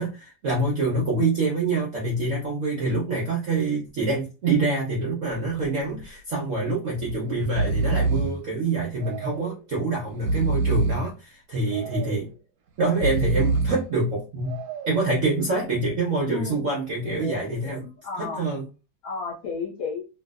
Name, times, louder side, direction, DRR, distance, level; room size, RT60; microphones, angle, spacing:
voice 1, 0.0-12.3 12.8-17.8 18.2-18.7, right 3 dB, 60° right, -3 dB, 0.8 m, -26 dB
Breathing, 5.3-5.7 6.0-6.1 7.0-7.2 7.4-8.4 9.0-9.6 10.1-11.1 11.7-12.3 12.9-13.9 14.5-15.1, right 3 dB, 85° right, 1.5 m, -26 dB
voice 2, 16.3-16.7 17.0-18.5 19.0-20.0, left 5 dB, 55° left, -2 dB, 1.2 m, -33 dB
3.1 x 2.7 x 2.3 m, 0.32 s
omnidirectional pair, 2.2 m